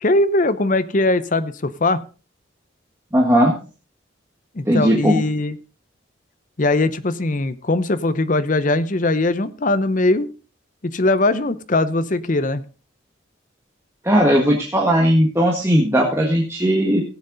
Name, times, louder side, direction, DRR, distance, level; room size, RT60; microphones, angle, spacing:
voice 1, 0.0-2.0 4.5-5.5 6.6-10.3 10.8-12.6, left 2 dB, 45° left, 13 dB, 0.8 m, -20 dB
voice 2, 3.1-3.5 4.7-5.2 14.0-17.0, equal, 15° right, -1 dB, 1.6 m, -17 dB
16.5 x 7.8 x 4.0 m, 0.36 s
head